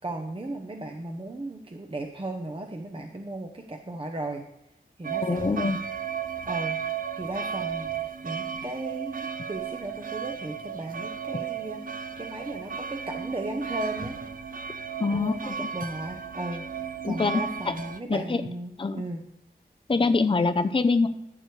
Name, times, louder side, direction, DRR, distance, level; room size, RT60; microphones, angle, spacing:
voice 1, 0.0-4.4 5.0-5.4 6.4-6.8 7.1-14.2 15.1-16.7 17.0-19.2, right 2 dB, 30° right, 3 dB, 0.9 m, -36 dB
sound 1, 5.0-18.0, right 7 dB, 55° right, 0.6 m, -34 dB
voice 2, 5.2-5.8 15.0-15.7 17.0-17.4 18.1-18.4 18.8-19.0 19.9-21.1, left 3 dB, 30° left, 9 dB, 0.6 m, -24 dB
13.5 x 6.8 x 3.3 m, 0.83 s
wide cardioid pair, 60°, 17 cm